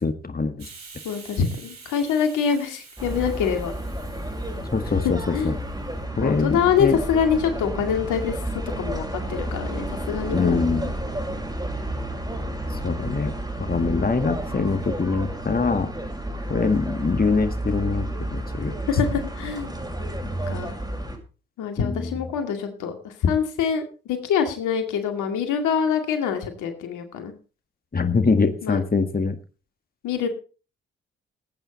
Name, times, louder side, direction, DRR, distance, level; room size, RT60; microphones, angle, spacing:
voice 1, 0.0-0.7 4.7-5.2 5.4-5.5 6.2-7.0 10.3-10.9 12.8-15.9 16.5-18.8 21.8-22.2 27.9-29.3, left 4 dB, 30° left, 9 dB, 1.8 m, -24 dB
Hiss, 0.6-6.0, right 4 dB, 65° right, 4.5 m, -47 dB
voice 2, 1.0-3.7 5.0-5.5 6.2-8.4 8.8-10.6 13.7-14.1 18.6-19.7 20.5-20.7 21.6-23.8 24.1-27.3 28.6-28.8 30.0-30.3, left 7 dB, 80° left, 6 dB, 2.3 m, -25 dB
sound 1, 3.0-21.2, right 1 dB, 15° right, 6.5 m, -31 dB
17.5 x 9.0 x 4.1 m, 0.35 s
hypercardioid pair, 40°, 30 cm